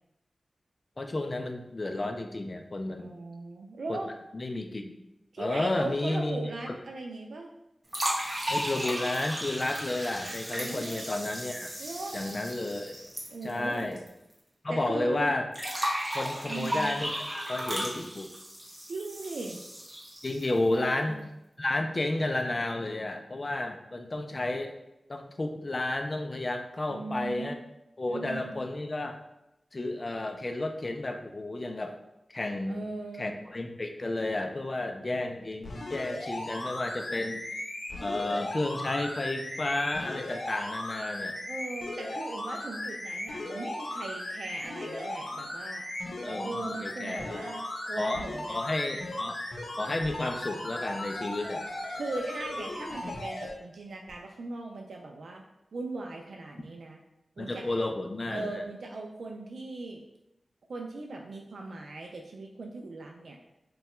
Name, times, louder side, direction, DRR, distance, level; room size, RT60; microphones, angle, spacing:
voice 1, 1.0-3.1 3.9-4.0 4.3-4.9 5.4-6.8 8.5-11.7 12.1-13.0 13.4-14.0 14.6-15.5 16.1-18.3 20.2-21.2 21.6-24.7 25.1-27.6 28.0-29.2 29.7-32.0 32.3-32.9 33.2-37.4 38.0-41.4 46.2-47.4 48.0-49.4 49.8-51.7 56.6-56.7 57.4-58.6, left 2 dB, 40° left, 5 dB, 0.4 m, -32 dB
voice 2, 3.0-4.1 5.3-7.5 10.6-11.1 11.8-12.2 13.3-13.9 14.7-15.3 16.5-16.9 18.9-19.6 20.7-21.2 26.9-27.6 28.1-28.5 32.7-33.4 41.5-45.8 46.4-48.6 52.0-55.4 55.7-57.0 57.4-57.7 58.3-60.0 60.7-63.4, right 2 dB, 90° right, 1 dB, 0.3 m, -39 dB
sound 1, 7.9-14.1 14.3-14.4 15.5-20.6, equal, 30° right, 0.9 m, -35 dB
sound 2, 35.6-53.5 54.1-54.2, left 1 dB, 75° left, 0.7 m, -37 dB
2.8 x 2.2 x 4.1 m, 0.88 s
wide cardioid pair, 85°, 0 cm